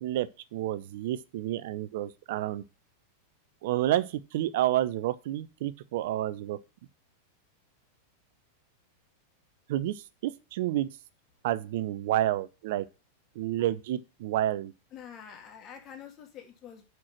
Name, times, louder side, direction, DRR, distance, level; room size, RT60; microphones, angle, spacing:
voice 1, 0.0-2.6 3.6-6.6 9.7-10.9 11.4-12.9 13.4-14.7, right 13 dB, 55° right, 0.6 m, -30 dB
voice 2, 14.9-16.8, left 8 dB, 30° left, 2.1 m, -46 dB
6.2 x 6.0 x 7.3 m
figure-of-eight pair, 90°, 0 cm